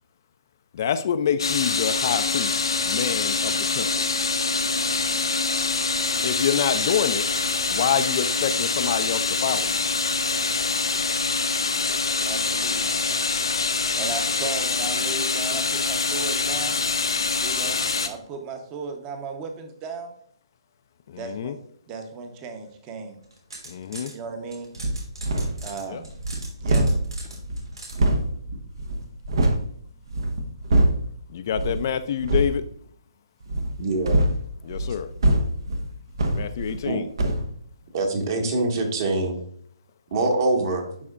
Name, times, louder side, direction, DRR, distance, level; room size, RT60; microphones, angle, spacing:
voice 1, 0.7-4.0 6.2-7.2 7.7-9.8 21.1-21.5 23.7-24.1 25.9-26.0 31.3-32.6 34.6-35.1 36.3-37.1, left 8 dB, 45° left, 11 dB, 0.4 m, -27 dB
sound 1, 1.4-18.1, left 4 dB, 85° left, 0.8 m, -25 dB
voice 2, 12.2-13.2 14.0-16.8 17.4-20.1 21.2-21.6 21.9-23.2 24.1-24.7 25.6-26.1 26.6-26.9 27.2-27.3, right 5 dB, 25° right, 6 dB, 0.9 m, -36 dB
sound 2, 23.2-24.1 24.5-28.0, right 2 dB, 85° right, 2.9 m, -41 dB
sound 3, 24.8-25.7 26.0-29.7 30.1-31.1 31.5-31.9 32.2-32.6 33.4-36.9 37.2-37.5, right 1 dB, 65° right, 1.0 m, -24 dB
voice 3, 33.8-34.2 36.8-37.0 37.9-39.4 40.1-40.9, right 2 dB, 45° right, 2 dB, 1.7 m, -24 dB
11.0 x 4.2 x 2.4 m, 0.63 s
hypercardioid pair, 150°, 3 cm